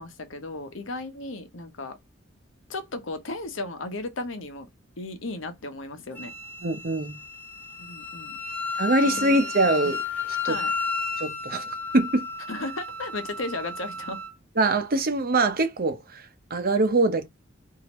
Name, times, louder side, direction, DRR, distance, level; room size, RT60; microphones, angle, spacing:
voice 1, 0.0-2.0 2.7-4.7 5.0-6.3 7.8-8.4 9.0-9.4 10.4-10.7 12.5-14.2, left 2 dB, 85° left, 1.0 m, -35 dB
Wind instrument woodwind instrument, 6.1-14.3, left 4 dB, 10° left, 0.9 m, -33 dB
voice 2, 6.6-7.2 8.8-10.0 10.4-10.6 11.2-12.2 14.6-16.2 16.5-17.3, right 2 dB, 50° right, 0.8 m, -23 dB
4.7 x 2.7 x 3.0 m
head